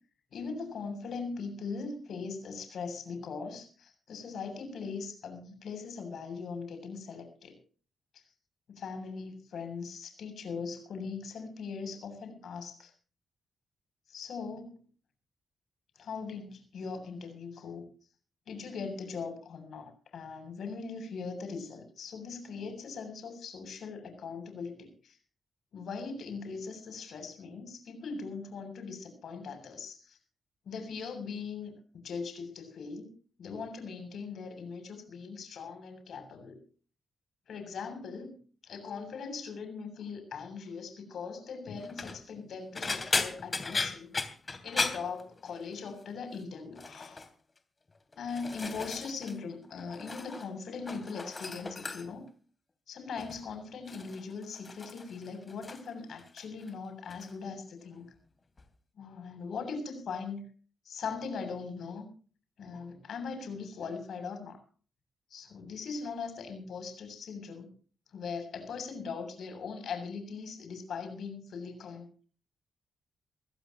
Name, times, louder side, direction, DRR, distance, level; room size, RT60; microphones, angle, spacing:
voice 1, 0.3-7.6 8.1-8.2 8.7-12.9 14.1-14.8 16.0-17.8 18.5-25.2 25.7-30.2 30.7-31.7 32.0-33.1 33.4-36.6 37.5-38.4 38.6-44.1 44.6-47.3 48.2-52.3 52.9-58.1 59.0-60.4 60.9-62.1 62.6-64.6 65.3-67.7 68.1-72.2, left 5 dB, 70° left, 7 dB, 7.5 m, -40 dB
sound 1, 41.8-42.2 42.7-45.8 46.1-46.4 46.8-47.3 47.9-49.4 49.6-50.5 50.8-52.3 53.2-53.5 53.9-55.9 56.2-56.7 57.1-57.3 58.6-58.7, left 3 dB, 30° left, 3.1 m, -36 dB
24.0 x 16.0 x 3.0 m, 0.41 s
cardioid pair, 90°, 0 cm